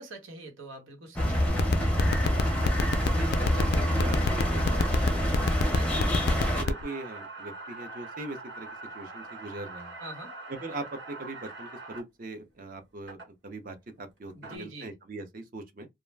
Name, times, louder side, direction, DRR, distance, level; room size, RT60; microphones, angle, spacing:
voice 1, 0.0-2.2 5.7-6.2 10.0-10.3 14.3-14.9, right 1 dB, 90° right, 1.1 m, -44 dB
sound 1, 1.2-6.6, equal, 5° left, 0.5 m, -26 dB
sound 2, 1.5-6.8, left 6 dB, 55° left, 0.3 m, -26 dB
sound 3, 2.1-12.0 13.1-13.3 14.2-14.6, right 3 dB, 65° right, 1.0 m, -43 dB
voice 2, 3.1-5.3 5.5-6.1 6.5-8.7 8.9-9.9 10.5-15.9, right 2 dB, 45° right, 0.5 m, -41 dB
2.4 x 2.1 x 3.2 m
head